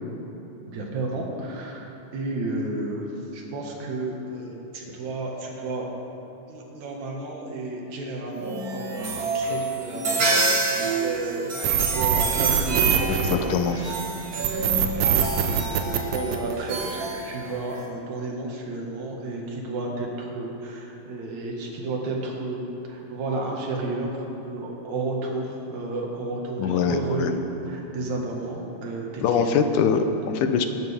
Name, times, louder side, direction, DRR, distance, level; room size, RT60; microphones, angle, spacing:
voice 1, 0.7-1.9 2.1-3.1 3.3-5.9 6.5-14.0 14.3-24.1 24.4-27.4 27.7-29.5, right 2 dB, 65° right, -1 dB, 3.0 m, -32 dB
sound 1, 8.3-17.9, right 2 dB, 45° right, 1.2 m, -28 dB
sound 2, 11.6-13.9 14.4-16.9, right 9 dB, 90° right, 2.4 m, -23 dB
voice 2, 13.3-13.8 26.6-27.3 29.2-30.7, left 6 dB, 75° left, 7 dB, 2.2 m, -23 dB
20.5 x 11.5 x 3.6 m, 3.0 s
omnidirectional pair, 3.8 m